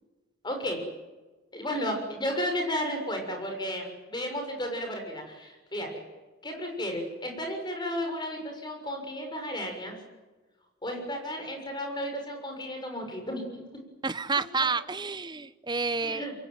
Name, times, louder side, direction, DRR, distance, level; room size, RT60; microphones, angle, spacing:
voice 1, 0.4-0.8 1.5-6.0 6.4-9.9 10.8-13.6 16.0-16.3, equal, 20° left, 4 dB, 6.7 m, -33 dB
voice 2, 14.0-16.2, right 4 dB, 20° right, 13 dB, 1.0 m, -29 dB
27.0 x 23.0 x 9.4 m, 1.2 s
head